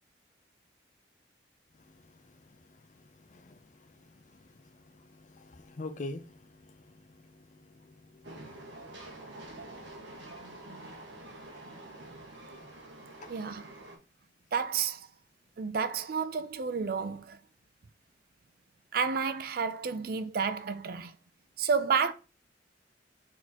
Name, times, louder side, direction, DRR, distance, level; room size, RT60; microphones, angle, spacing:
voice 1, 4.9-6.8 7.3-8.9, left 2 dB, 40° left, 0.5 m, -45 dB
Train, 8.2-14.0, right 1 dB, 85° right, 1.4 m, -47 dB
voice 2, 13.3-13.7 14.5-15.1 15.6-17.4 18.9-21.1 21.6-22.1, right 5 dB, 55° right, 0.4 m, -30 dB
4.3 x 4.1 x 2.9 m
head